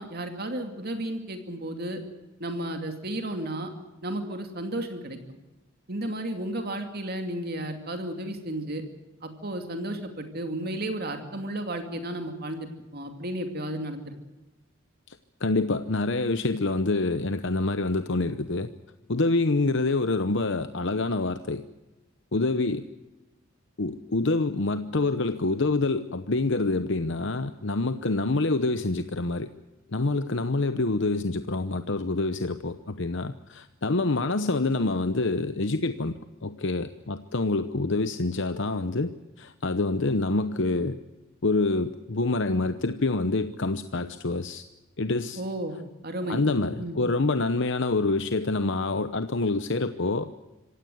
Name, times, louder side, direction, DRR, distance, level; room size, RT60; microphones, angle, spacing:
voice 1, 0.0-2.0 2.4-3.7 4.0-5.2 5.9-8.8 9.2-14.1 45.4-45.7 46.0-46.4 46.8-47.0, right 1 dB, 50° right, 5 dB, 2.6 m, -33 dB
voice 2, 15.4-18.7 19.1-21.6 22.3-22.9 23.8-29.5 29.9-39.1 39.4-41.0 41.4-44.6 45.0-45.4 46.3-50.4, left 3 dB, 65° left, 10 dB, 0.9 m, -26 dB
26.0 x 16.5 x 8.0 m, 1.1 s
head